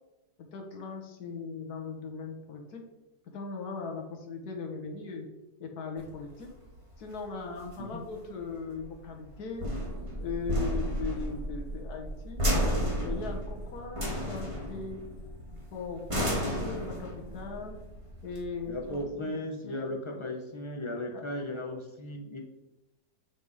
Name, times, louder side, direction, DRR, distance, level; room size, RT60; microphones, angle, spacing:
voice 1, 0.4-2.8 3.2-5.3 5.6-6.5 7.0-9.7 10.2-12.5 13.0-15.1 15.7-17.8 18.2-19.3 19.7-20.3 21.1-21.3, left 4 dB, 65° left, 1 dB, 1.7 m, -39 dB
sound 1, 6.0-19.0, equal, 20° right, 1.6 m, -33 dB
voice 2, 18.7-22.4, left 1 dB, 40° left, 1 dB, 0.4 m, -36 dB
7.1 x 4.2 x 4.8 m, 1.0 s
omnidirectional pair, 1.8 m